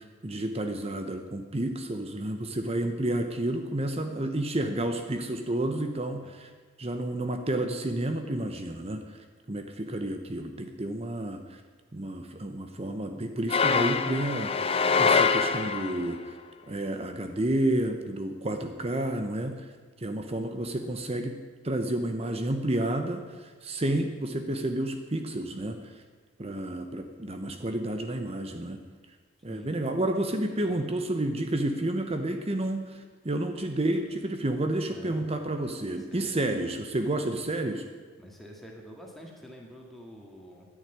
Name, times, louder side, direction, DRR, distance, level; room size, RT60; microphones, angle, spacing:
voice 1, 0.0-6.5 6.8-9.2 9.5-11.6 11.9-16.4 16.7-19.7 20.0-25.9 26.4-28.8 29.4-37.9, right 1 dB, 30° right, 7 dB, 0.8 m, -30 dB
sound 1, 13.5-16.1, left 5 dB, 30° left, 0.6 m, -24 dB
voice 2, 30.5-30.8 34.9-35.4 35.8-36.5 38.2-40.7, equal, ahead, -1 dB, 2.2 m, -47 dB
10.5 x 9.8 x 9.5 m, 1.5 s
head